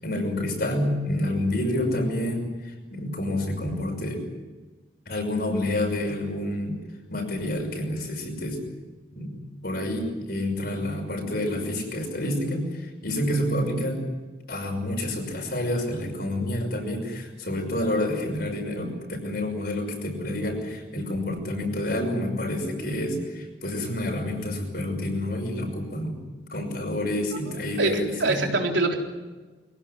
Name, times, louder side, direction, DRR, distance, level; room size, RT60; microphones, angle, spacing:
voice 1, 0.0-4.3 5.1-6.8 7.1-8.6 9.1-9.3 9.6-14.0 14.5-18.9 19.2-26.2 26.5-28.5, left 1 dB, 60° left, 3 dB, 6.0 m, -28 dB
voice 2, 27.8-29.0, right 2 dB, 85° right, 2 dB, 3.7 m, -24 dB
23.5 x 17.0 x 9.9 m, 1.3 s
head